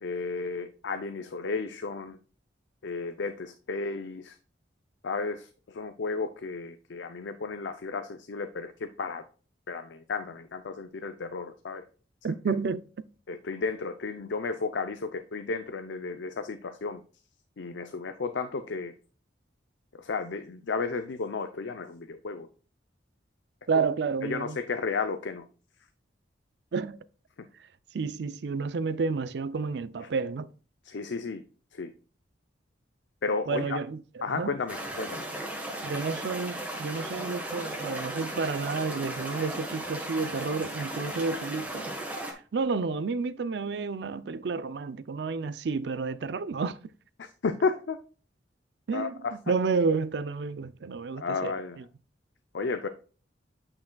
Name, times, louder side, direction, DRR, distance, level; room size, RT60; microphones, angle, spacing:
voice 1, 0.0-2.2 2.8-4.4 5.0-9.2 9.7-11.9 12.3-12.4 13.3-17.0 17.6-18.9 19.9-22.5 23.7-23.8 24.2-25.4 30.8-31.4 31.7-31.9 33.2-33.8 34.2-35.2 47.2-48.0 48.9-49.3 51.2-51.8 52.5-52.9, left 4 dB, 80° left, 0.5 m, -33 dB
voice 2, 12.2-12.8 23.7-24.6 26.7-27.0 27.9-30.5 33.5-34.5 35.8-41.9 42.3-46.8 48.9-49.2 49.5-51.8, right 4 dB, 65° right, 0.4 m, -30 dB
sound 1, 34.7-42.3, right 1 dB, 10° right, 1.3 m, -36 dB
8.8 x 5.9 x 2.3 m
head